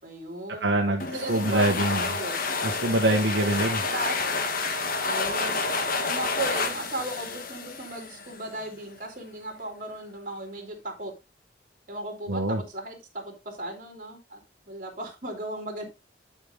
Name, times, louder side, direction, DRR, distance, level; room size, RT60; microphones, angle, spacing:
voice 1, 0.0-2.4 3.9-4.5 5.0-5.6 6.0-11.1 11.9-14.4 14.7-15.8, right 1 dB, 50° right, 2 dB, 3.4 m, -36 dB
voice 2, 0.6-1.0 1.3-2.0 2.6-3.8 12.3-12.6, right 1 dB, 75° right, 1 dB, 1.4 m, -24 dB
sound 1, 1.0-8.5, left 3 dB, 50° left, 1.4 m, -29 dB
11.0 x 5.2 x 3.9 m, 0.25 s
head